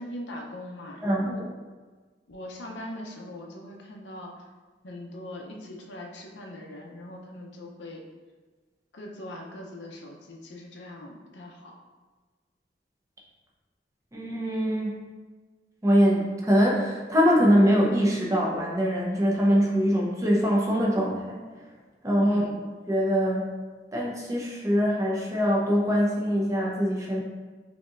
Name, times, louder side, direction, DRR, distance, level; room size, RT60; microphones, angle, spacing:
voice 1, 0.0-1.5 2.3-4.4 4.8-8.0 8.9-11.8 22.2-22.6, left 1 dB, 75° left, 0 dB, 0.6 m, -41 dB
voice 2, 14.1-14.9 15.8-21.4 22.0-22.4 22.9-23.5 23.9-27.2, equal, 15° right, -3 dB, 0.6 m, -23 dB
5.2 x 2.8 x 2.5 m, 1.4 s
head